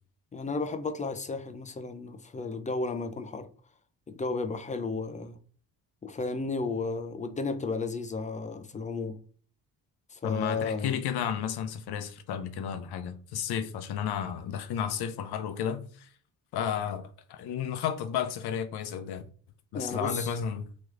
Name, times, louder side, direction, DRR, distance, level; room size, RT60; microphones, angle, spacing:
voice 1, 0.3-3.5 4.1-5.4 6.0-9.2 10.1-11.0 19.7-20.3, left 3 dB, 20° left, 0.4 m, -33 dB
voice 2, 10.2-16.1 16.5-19.2 19.7-20.7, left 8 dB, 65° left, 0.6 m, -32 dB
3.1 x 3.0 x 2.5 m
supercardioid pair, 70°, 42 cm